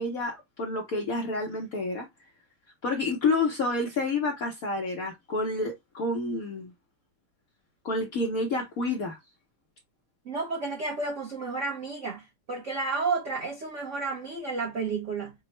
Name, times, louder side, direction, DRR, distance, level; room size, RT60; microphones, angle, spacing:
voice 1, 0.0-2.1 2.8-6.7 7.8-9.2, left 2 dB, 70° left, 0.8 m, -29 dB
voice 2, 10.2-15.3, right 4 dB, 80° right, 0.6 m, -31 dB
5.3 x 2.0 x 3.0 m
omnidirectional pair, 2.4 m